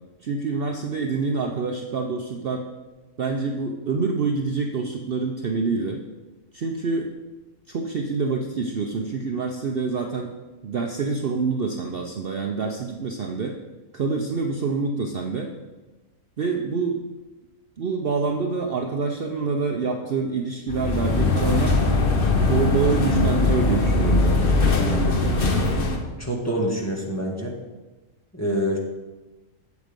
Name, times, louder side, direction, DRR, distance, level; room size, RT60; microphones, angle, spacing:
voice 1, 0.2-2.6 3.2-6.0 6.5-7.1 7.7-10.3 10.6-13.6 13.9-15.5 16.4-17.0 17.8-21.8 22.5-24.4, right 4 dB, 50° right, 3 dB, 0.8 m, -26 dB
sound 1, 20.7-26.0, left 2 dB, 45° left, 1.2 m, -20 dB
voice 2, 26.2-27.6 28.3-28.8, equal, 10° left, -2 dB, 1.5 m, -26 dB
8.1 x 7.9 x 5.2 m, 1.2 s
omnidirectional pair, 1.4 m